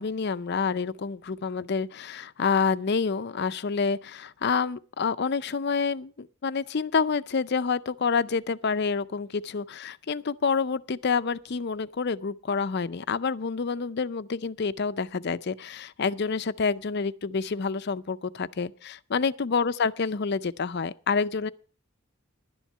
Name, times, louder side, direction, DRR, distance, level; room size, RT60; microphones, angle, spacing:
voice 1, 0.0-21.5, left 5 dB, 50° left, 0.5 m, -28 dB
11.5 x 10.0 x 5.4 m
head